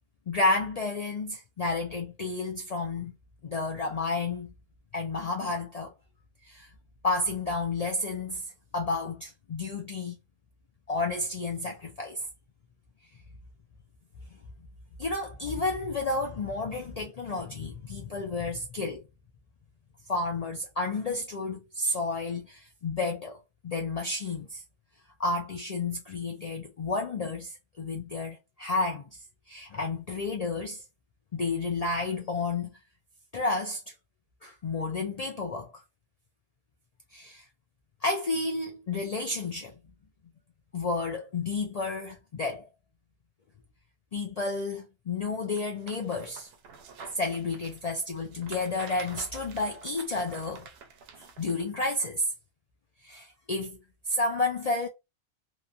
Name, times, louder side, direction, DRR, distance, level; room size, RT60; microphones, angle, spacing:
voice 1, 0.3-3.1 3.4-4.5 4.9-5.9 6.4-6.7 7.0-10.2 10.9-12.3 15.0-19.1 20.1-24.6 25.2-30.8 31.3-32.7 33.3-33.8 34.4-35.8 37.1-37.5 38.0-39.7 40.7-42.7 44.1-46.5 47.1-50.7 51.2-52.3 53.0-53.8 54.1-54.9, left 3 dB, 60° left, 0.4 m, -31 dB
sound 1, 45.5-51.6 52.0-52.1, right 5 dB, 65° right, 0.8 m, -48 dB
2.9 x 2.2 x 2.5 m
omnidirectional pair, 1.2 m